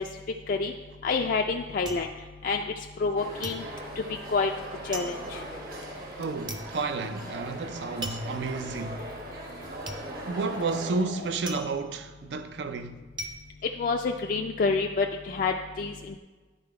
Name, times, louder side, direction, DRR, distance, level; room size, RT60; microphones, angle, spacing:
sound 1, 0.7-3.1 3.4-14.5 14.9-15.5, right 1 dB, 25° right, 0.6 m, -42 dB
voice 1, 1.0-2.1 2.4-2.6 3.0-3.6 4.3-4.5 4.8-5.4 13.8-16.2, left 4 dB, 50° left, 0.3 m, -27 dB
sound 2, 3.2-10.9, right 1 dB, 55° right, 1.1 m, -40 dB
sound 3, 5.2-6.2 7.4-7.5 8.4-8.5 9.1-11.4, left 2 dB, 80° left, 0.8 m, -45 dB
voice 2, 6.2-9.0 10.3-13.0, right 4 dB, 80° right, 0.4 m, -31 dB
10.5 x 3.8 x 4.7 m
head